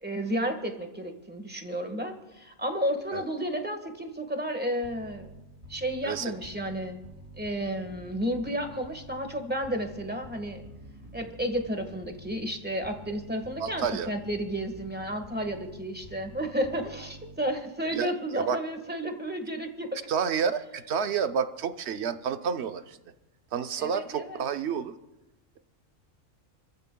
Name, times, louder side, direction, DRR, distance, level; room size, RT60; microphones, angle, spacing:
voice 1, 0.0-5.3 5.7-7.0 7.4-10.6 11.1-20.0 23.8-24.4, equal, 10° right, 5 dB, 1.4 m, -32 dB
sound 1, 4.8-17.7, right 1 dB, 90° right, 6.2 m, -48 dB
voice 2, 13.6-14.1 17.9-18.6 20.1-23.0 23.5-24.9, right 6 dB, 60° right, 9 dB, 1.0 m, -30 dB
29.5 x 14.5 x 2.3 m, 1.0 s
omnidirectional pair, 1.4 m